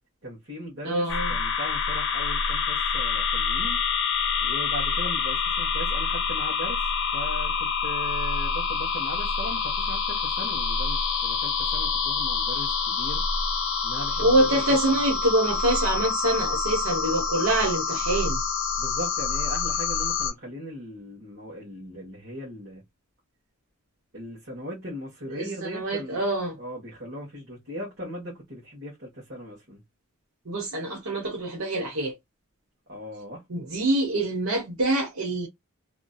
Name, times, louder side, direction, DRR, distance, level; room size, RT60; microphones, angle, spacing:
voice 1, 0.2-3.8 4.4-13.2 13.8-14.8 18.8-22.8 24.1-26.2 26.6-29.8 32.9-33.4, equal, 55° right, 1.5 m, -38 dB
voice 2, 0.8-1.4 14.2-18.4 25.3-26.6 30.4-32.2 33.5-35.5, right 1 dB, 80° right, 1.0 m, -25 dB
sound 1, 1.1-20.3, left 5 dB, 55° left, 0.7 m, -27 dB
2.9 x 2.6 x 2.3 m
head